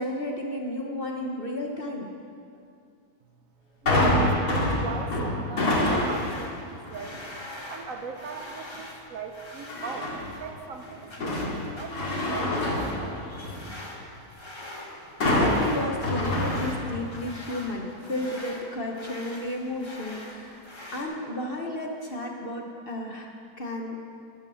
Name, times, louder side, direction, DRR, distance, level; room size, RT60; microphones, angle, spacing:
voice 1, 0.0-2.1 15.3-20.6 20.9-23.3 23.6-24.0, left 1 dB, 40° left, 1 dB, 1.1 m, -32 dB
voice 2, 3.8-7.4 7.7-13.1, right 5 dB, 60° right, 5 dB, 1.2 m, -40 dB
sound 1, 3.9-6.4 6.9-7.2 9.7-10.4 10.8-13.7 15.2-17.1 17.5-17.6, left 1 dB, 80° left, 2.8 m, -26 dB
sound 2, 5.9-21.0, left 1 dB, 20° left, 1.3 m, -44 dB
12.5 x 9.0 x 7.0 m, 2.4 s
omnidirectional pair, 1.7 m